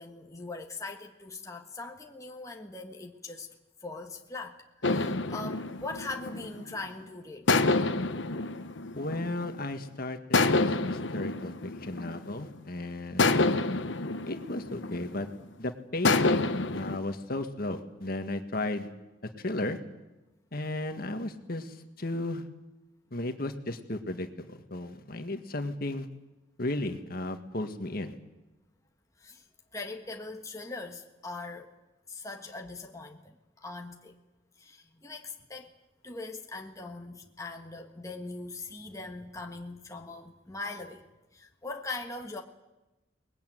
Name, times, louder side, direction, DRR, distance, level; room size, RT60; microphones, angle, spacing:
voice 1, 0.0-3.5 3.8-7.6 29.2-29.5 29.7-31.7 32.1-34.1 34.6-35.7 36.0-41.0 41.3-42.4, left 3 dB, 15° left, 2 dB, 1.5 m, -41 dB
sound 1, 4.8-6.9 7.5-9.7 10.3-12.6 13.2-15.4 16.0-17.0, left 3 dB, 75° left, 1.2 m, -28 dB
voice 2, 9.0-13.6 14.3-15.3 15.6-18.9 19.4-19.8 20.5-22.4 23.1-26.1 26.6-28.2, left 2 dB, 50° left, 7 dB, 1.8 m, -35 dB
22.5 x 20.5 x 9.3 m, 1.0 s
head